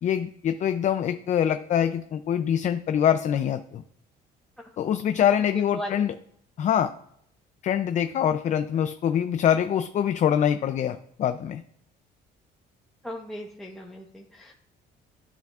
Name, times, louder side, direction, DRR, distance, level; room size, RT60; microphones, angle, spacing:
voice 1, 0.0-3.8 4.8-6.1 6.6-6.9 7.6-11.6, left 9 dB, 45° left, 9 dB, 0.4 m, -24 dB
voice 2, 5.4-5.9 13.0-14.5, equal, 5° left, -3 dB, 1.0 m, -38 dB
12.5 x 6.9 x 2.4 m, 0.69 s
cardioid pair, 110°, 17 cm